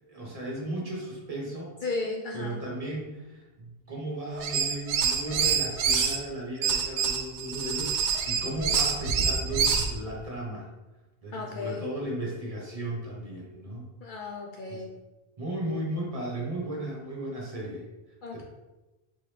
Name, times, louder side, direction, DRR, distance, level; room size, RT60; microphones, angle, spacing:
voice 1, 0.0-1.8 2.3-10.7 11.2-13.9 14.7-14.8 15.4-17.8 18.3-18.4, right 1 dB, 35° right, -3 dB, 1.1 m, -35 dB
voice 2, 1.8-2.6 11.3-11.9 14.0-14.9 18.2-18.4, left 3 dB, 60° left, 0 dB, 0.6 m, -34 dB
sound 1, 4.4-6.2 6.6-9.9, right 6 dB, 90° right, 0.9 m, -26 dB
4.2 x 3.8 x 3.2 m, 1.1 s
omnidirectional pair, 1.1 m